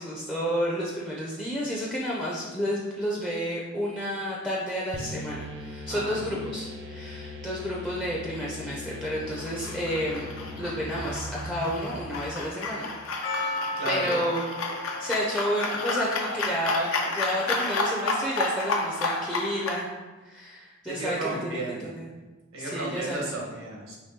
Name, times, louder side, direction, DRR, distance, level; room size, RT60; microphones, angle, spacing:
voice 1, 0.0-10.3 10.5-12.9 13.9-20.0 20.2-21.6 21.9-22.1 22.6-23.2, equal, 5° left, -5 dB, 0.5 m, -31 dB
sound 1, 4.9-12.6, left 1 dB, 60° right, 0.7 m, -39 dB
voice 2, 5.9-6.4 13.8-14.2 20.9-21.9 22.5-24.0, right 2 dB, 85° right, -3 dB, 1.2 m, -33 dB
sound 2, 9.3-19.8, left 3 dB, 80° left, 0.6 m, -31 dB
Percussion, 13.2-18.5, left 2 dB, 60° left, 1.2 m, -37 dB
4.1 x 3.0 x 3.6 m, 1.2 s
head